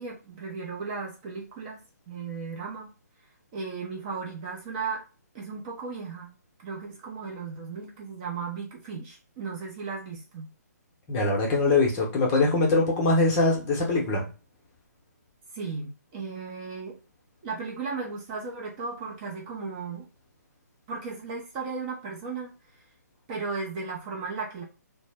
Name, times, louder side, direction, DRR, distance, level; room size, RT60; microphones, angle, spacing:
voice 1, 0.0-2.9 3.5-5.0 5.3-6.3 6.6-10.5 15.5-17.0 17.4-20.1 20.9-22.5 23.3-24.6, right 4 dB, 25° right, 0.5 m, -35 dB
voice 2, 11.1-14.2, left 3 dB, 25° left, 0.7 m, -23 dB
2.0 x 2.0 x 3.3 m
hypercardioid pair, 145°, 9 cm